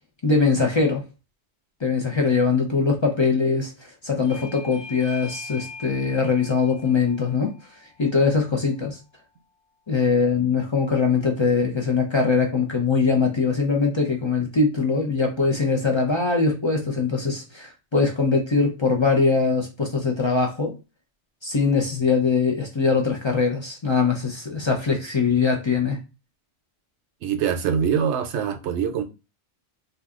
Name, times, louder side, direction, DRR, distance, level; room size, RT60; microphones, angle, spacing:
voice 1, 0.2-1.0 1.8-7.5 8.0-9.0 9.9-20.7 21.4-26.0, left 4 dB, 40° left, 0.4 m, -22 dB
Bell / Doorbell, 4.2-9.4, left 4 dB, 30° right, 0.7 m, -43 dB
voice 2, 27.2-29.0, right 7 dB, 70° right, 0.9 m, -24 dB
2.6 x 2.3 x 3.5 m
omnidirectional pair, 1.2 m